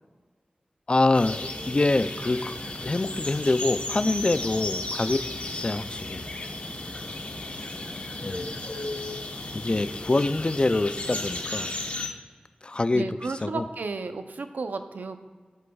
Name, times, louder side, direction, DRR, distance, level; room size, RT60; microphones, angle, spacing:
voice 1, 0.9-5.2 5.4-6.2 8.2-8.5 9.5-11.7 12.6-13.1 13.4-13.6, left 2 dB, 35° left, 13 dB, 0.3 m, -25 dB
sound 1, 1.1-12.1, left 2 dB, 50° left, 1.0 m, -34 dB
voice 2, 12.9-15.2, right 3 dB, 80° right, 8 dB, 0.6 m, -33 dB
13.0 x 6.5 x 2.3 m, 1.5 s
wide cardioid pair, 65°, 3 cm